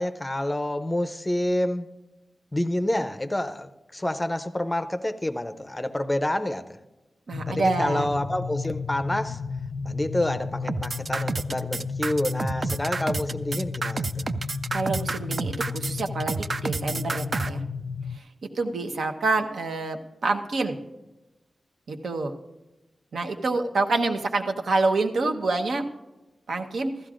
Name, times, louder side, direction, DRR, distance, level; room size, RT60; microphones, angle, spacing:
voice 1, 0.0-1.9 2.5-6.7 7.5-9.4 9.8-14.3, left 1 dB, 15° left, 9 dB, 0.5 m, -28 dB
sound 1, 7.3-18.2, left 5 dB, 70° left, 0.4 m, -33 dB
voice 2, 7.3-8.1 14.7-17.6 18.1-20.8 21.9-22.3 23.1-25.9 26.5-26.9, right 3 dB, 80° right, 5 dB, 1.0 m, -27 dB
sound 2, 10.7-17.5, right 4 dB, 40° right, 0.3 m, -29 dB
15.5 x 13.5 x 2.5 m, 1.1 s
wide cardioid pair, 145°, 0 cm